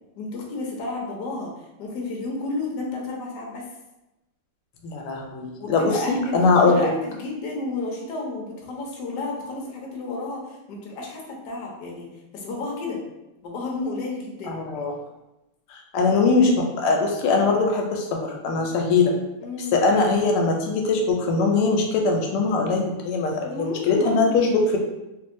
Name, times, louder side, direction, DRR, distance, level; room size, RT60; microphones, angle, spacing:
voice 1, 0.2-3.6 5.6-12.1 12.3-13.0 13.4-14.6 19.4-19.7 23.4-24.3, left 3 dB, 65° left, -1 dB, 1.1 m, -32 dB
voice 2, 4.8-6.8 14.5-14.9 15.7-19.1 19.7-24.8, left 3 dB, 85° left, 1 dB, 1.5 m, -21 dB
3.3 x 2.6 x 2.5 m, 0.97 s
omnidirectional pair, 2.4 m